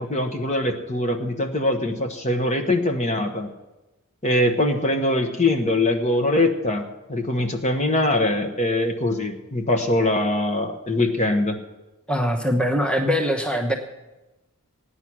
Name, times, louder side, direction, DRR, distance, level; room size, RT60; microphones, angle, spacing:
voice 1, 0.0-3.5 4.2-11.6, left 1 dB, 30° left, 6 dB, 1.1 m, -22 dB
voice 2, 12.1-13.7, equal, 5° left, 2 dB, 1.0 m, -22 dB
16.0 x 9.8 x 6.1 m, 1.1 s
head